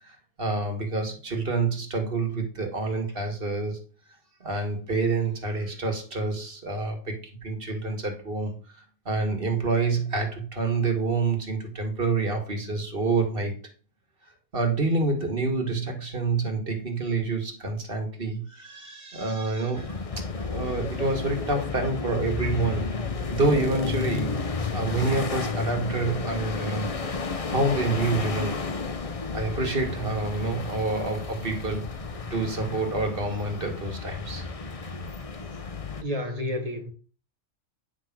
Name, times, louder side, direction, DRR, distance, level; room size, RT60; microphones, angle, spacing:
voice 1, 0.0-3.8 4.4-8.5 9.1-13.5 14.5-22.9 23.3-24.4 24.7-26.9 27.5-28.6 29.3-31.9 32.3-34.5, right 3 dB, 45° right, 2.1 m, -27 dB
sound 1, 19.7-36.0, left 4 dB, 35° left, 0.7 m, -32 dB
voice 2, 36.0-36.9, left 1 dB, 30° right, 1.3 m, -30 dB
9.8 x 3.9 x 6.0 m
omnidirectional pair, 1.3 m